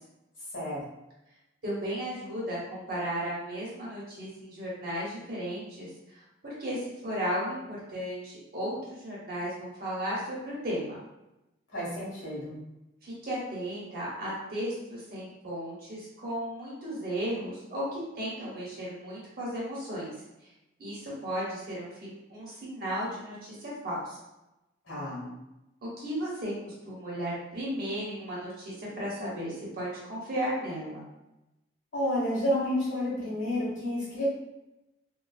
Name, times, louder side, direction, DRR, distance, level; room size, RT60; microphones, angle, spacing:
voice 1, 0.5-0.9 11.7-12.6 24.9-25.3 31.9-34.3, left 1 dB, 75° left, -6 dB, 1.5 m, -30 dB
voice 2, 1.6-11.0 13.0-20.1 20.8-24.2 25.8-31.1, equal, 50° right, -6 dB, 1.0 m, -35 dB
3.0 x 2.2 x 2.4 m, 0.95 s
head